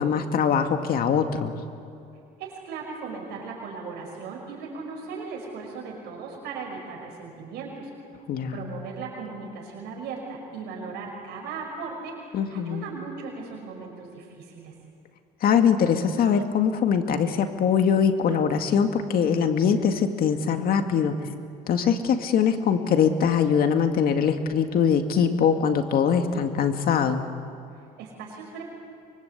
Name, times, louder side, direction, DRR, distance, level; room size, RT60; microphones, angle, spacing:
voice 1, 0.0-1.5 8.3-8.6 12.3-12.9 15.4-21.1 21.7-27.2, left 7 dB, 60° left, 6 dB, 2.1 m, -22 dB
voice 2, 2.4-7.9 8.5-14.7 27.8-28.6, right 4 dB, 90° right, -1 dB, 5.6 m, -37 dB
24.5 x 24.0 x 8.4 m, 2.5 s
cardioid pair, 110°, 17 cm